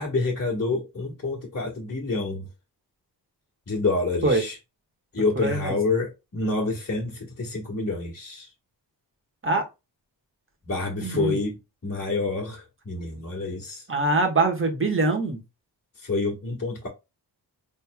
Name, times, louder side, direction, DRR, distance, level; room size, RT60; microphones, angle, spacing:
voice 1, 0.0-2.5 3.7-4.5 5.1-8.5 10.6-11.6 11.8-13.8 16.0-16.9, left 3 dB, 35° left, 1.7 m, -28 dB
voice 2, 5.3-5.8 9.4-9.6 11.0-11.4 13.9-15.4, right 2 dB, 30° right, 1.8 m, -23 dB
4.2 x 3.8 x 2.3 m
cardioid pair, 70°, 43 cm